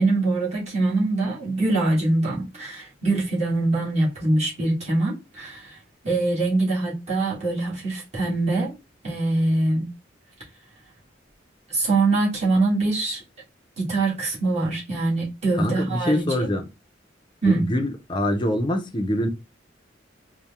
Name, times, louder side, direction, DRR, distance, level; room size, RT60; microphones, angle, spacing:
voice 1, 0.0-5.7 6.0-8.7 9.0-9.9 11.7-13.2 13.8-16.5 17.4-17.7, right 2 dB, 35° right, 1.8 m, -23 dB
voice 2, 15.5-16.7 17.5-19.3, left 1 dB, 25° left, 0.5 m, -24 dB
4.1 x 2.1 x 3.5 m
head